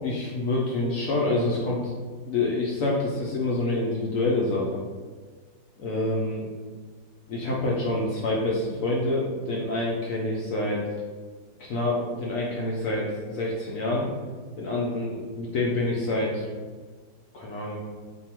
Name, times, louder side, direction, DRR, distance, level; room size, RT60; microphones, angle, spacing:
voice 1, 0.0-1.8 2.3-4.8 5.8-6.4 7.3-10.9 11.6-14.1 14.6-16.5 17.3-17.8, left 2 dB, 70° left, -4 dB, 0.8 m, -27 dB
2.7 x 2.6 x 4.3 m, 1.5 s
omnidirectional pair, 1.9 m